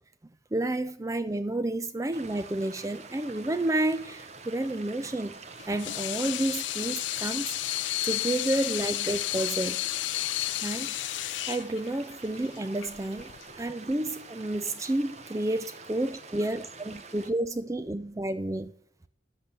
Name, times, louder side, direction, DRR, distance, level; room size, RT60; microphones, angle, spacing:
voice 1, 0.5-5.4 5.7-7.6 8.0-9.9 10.6-11.0 11.5-13.3 13.6-18.7, right 1 dB, 15° right, 0.4 m, -30 dB
sound 1, 2.1-17.3, right 4 dB, 35° right, 1.0 m, -46 dB
Water tap faucet / Sink (filling or washing), 5.6-13.6, left 16 dB, 90° left, 0.4 m, -32 dB
10.5 x 7.8 x 7.8 m
head